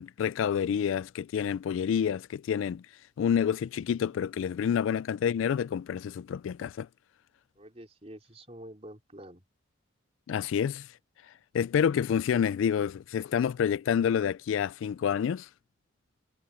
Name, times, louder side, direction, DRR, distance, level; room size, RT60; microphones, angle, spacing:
voice 1, 0.0-2.8 3.2-6.9 10.3-10.9 11.5-15.5, left 8 dB, 80° left, 0.3 m, -28 dB
voice 2, 3.4-4.1 7.6-9.4, right 1 dB, 30° right, 4.2 m, -48 dB
head